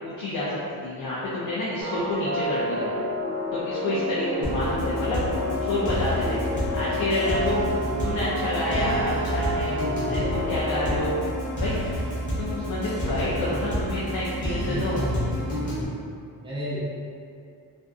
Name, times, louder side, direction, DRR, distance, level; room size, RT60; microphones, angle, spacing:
voice 1, 0.0-2.9 3.5-5.2 5.6-6.4 6.7-7.6 8.0-9.8 10.1-11.2 11.6-11.7 12.4-15.0, left 1 dB, 65° left, -7 dB, 0.5 m, -28 dB
sound 1, 1.8-11.2, left 1 dB, 55° right, 0.8 m, -30 dB
sound 2, 4.4-15.8, equal, 20° left, 0.8 m, -29 dB
voice 2, 14.7-15.8 16.4-16.9, equal, 15° right, -11 dB, 0.7 m, -32 dB
2.5 x 2.4 x 2.3 m, 2.4 s
wide cardioid pair, 180°, 39 cm